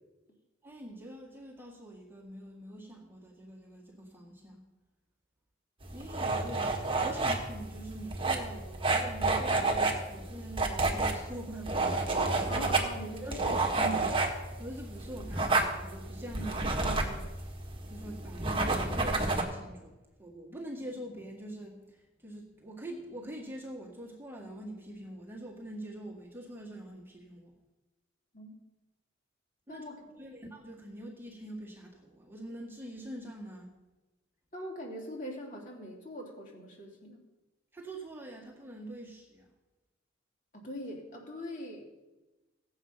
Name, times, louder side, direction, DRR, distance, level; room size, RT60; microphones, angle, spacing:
voice 1, 0.6-4.6 5.9-11.9 13.2-14.1 14.4-17.5 17.9-27.5 29.7-29.8 30.2-33.7 37.7-39.5, right 1 dB, 10° right, -2 dB, 1.9 m, -44 dB
sound 1, 5.8-19.4, right 3 dB, 25° right, 1.7 m, -30 dB
voice 2, 12.5-13.6 28.3-28.5 29.7-30.0 34.5-37.2 40.5-41.8, equal, 40° left, -1 dB, 3.2 m, -42 dB
17.0 x 7.9 x 5.7 m, 1.1 s
head